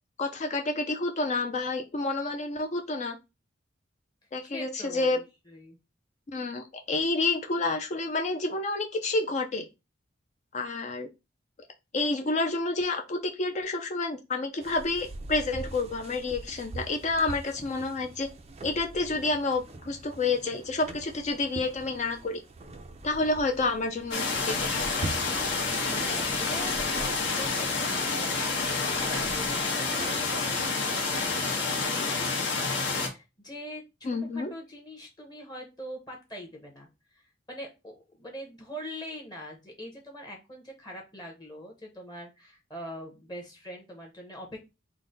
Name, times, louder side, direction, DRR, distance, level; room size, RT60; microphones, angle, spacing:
voice 1, 0.2-3.2 4.3-5.2 6.3-9.6 10.5-11.1 11.9-18.3 18.6-22.4 23.0-24.8 34.0-34.5, left 3 dB, 35° left, 4 dB, 0.4 m, -29 dB
voice 2, 4.4-5.8 25.8-32.5 33.0-36.9 37.1-44.6, equal, 20° left, 1 dB, 0.9 m, -43 dB
sound 1, 14.6-30.7, right 2 dB, 35° right, 0.4 m, -43 dB
sound 2, 24.1-33.1, left 4 dB, 65° left, 1.1 m, -28 dB
3.8 x 2.1 x 3.8 m, 0.26 s
head